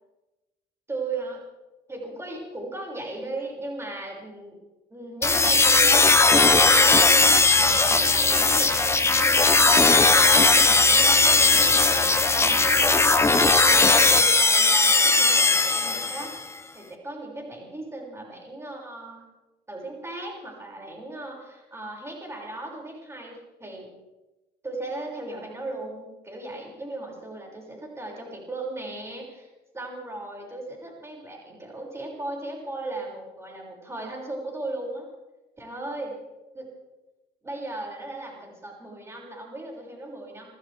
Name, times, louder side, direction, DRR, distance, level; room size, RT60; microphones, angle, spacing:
voice 1, 0.9-1.4 1.9-4.6 4.9-12.9 13.2-16.3 16.7-19.2 19.7-23.9 24.6-29.5 29.7-35.1 35.6-36.2 36.5-36.6 37.4-40.5, right 2 dB, 15° right, -1 dB, 6.2 m, -37 dB
sound 1, 5.2-16.4, left 3 dB, 15° left, 1.0 m, -18 dB
28.5 x 14.5 x 3.5 m, 1.1 s
cardioid pair, 110°, 17 cm